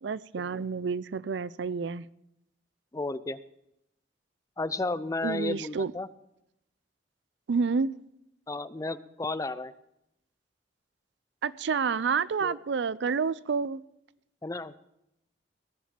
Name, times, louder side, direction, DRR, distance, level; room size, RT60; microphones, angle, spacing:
voice 1, 0.0-2.0 5.2-5.9 7.5-7.9 11.4-13.8, right 5 dB, 75° right, 0.5 m, -29 dB
voice 2, 2.9-3.4 4.6-6.1 8.5-9.7 12.4-12.6 14.4-14.8, left 2 dB, 20° left, 0.5 m, -33 dB
17.0 x 7.3 x 7.5 m
head